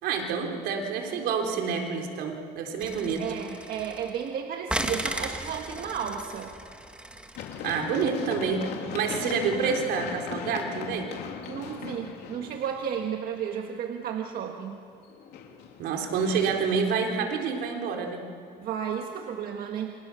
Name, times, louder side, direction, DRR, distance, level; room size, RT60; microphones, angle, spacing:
voice 1, 0.0-3.2 7.6-11.1 15.8-18.2, right 5 dB, 80° right, 3 dB, 3.8 m, -28 dB
sound 1, 2.8-4.3 4.7-8.0, right 1 dB, 5° right, 1.9 m, -36 dB
voice 2, 3.2-6.5 11.5-14.8 18.6-19.9, right 8 dB, 60° right, 3 dB, 1.7 m, -33 dB
Run, 7.4-13.2 15.1-16.6, left 7 dB, 75° left, 3.1 m, -38 dB
29.5 x 25.0 x 7.1 m, 2.4 s
cardioid pair, 115°, 17 cm